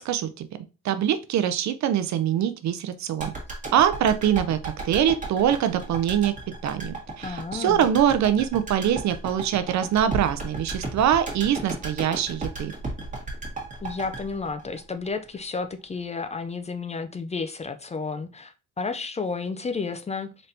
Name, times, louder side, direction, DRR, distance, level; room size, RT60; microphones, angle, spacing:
voice 1, 0.0-0.5 0.8-3.3 3.7-6.3 6.6-12.7, right 9 dB, 65° right, 11 dB, 0.6 m, -23 dB
sound 1, 3.2-15.4 15.7-15.8, right 3 dB, 25° right, 1.7 m, -34 dB
voice 2, 7.2-7.8 13.8-20.3, left 4 dB, 20° left, 9 dB, 0.4 m, -32 dB
4.1 x 3.3 x 2.7 m, 0.32 s
cardioid pair, 90°, 30 cm